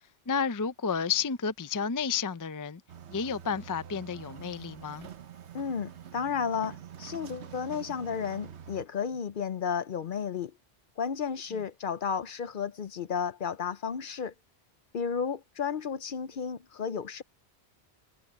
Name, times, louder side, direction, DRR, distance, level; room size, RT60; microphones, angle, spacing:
voice 1, 0.3-2.8 3.1-5.1, left 6 dB, 25° left, 0.4 m, -31 dB
sound 1, 2.9-8.9, right 9 dB, 85° right, 1.2 m, -46 dB
voice 2, 5.5-10.5 11.0-14.3 14.9-17.2, left 6 dB, 55° left, 0.8 m, -33 dB
omnidirectional pair, 1.1 m